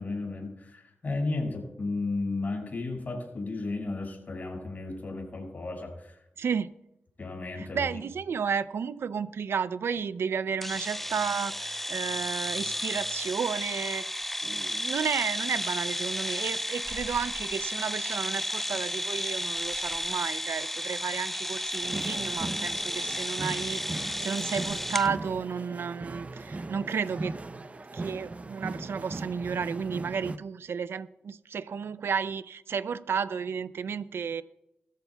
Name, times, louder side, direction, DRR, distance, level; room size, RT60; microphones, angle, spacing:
voice 1, 0.0-6.2 7.2-7.9, left 3 dB, 45° left, 5.7 m, -34 dB
voice 2, 6.4-6.7 7.6-27.3 27.9-34.4, right 6 dB, 80° right, 0.5 m, -32 dB
sound 1, 10.6-25.1, left 1 dB, 5° left, 0.3 m, -33 dB
sound 2, 21.8-30.4, right 2 dB, 35° right, 0.6 m, -38 dB
21.0 x 14.0 x 2.3 m
cardioid pair, 80°, 4 cm